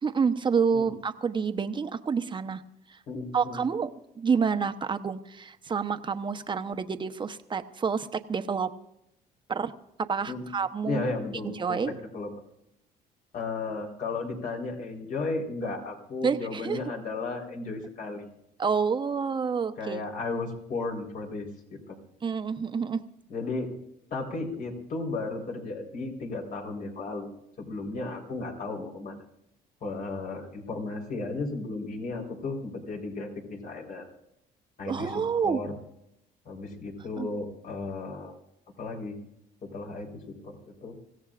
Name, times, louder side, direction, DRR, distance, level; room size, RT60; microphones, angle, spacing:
voice 1, 0.0-2.6 2.9-3.0 3.3-8.7 9.5-9.7 10.0-11.0 11.5-11.9 16.2-16.8 18.6-20.0 22.2-23.0 34.9-35.6 37.2-37.3, right 6 dB, 30° right, 9 dB, 1.0 m, -28 dB
voice 2, 3.1-3.6 10.3-10.5 10.8-12.3 13.3-18.3 19.8-22.0 23.3-23.7 24.1-27.3 27.6-29.2 29.8-34.1 34.8-35.7 36.5-38.3 38.8-39.2 39.6-40.9, left 3 dB, 55° left, 1 dB, 4.1 m, -34 dB
24.5 x 16.5 x 2.5 m, 0.81 s
cardioid pair, 110°, 17 cm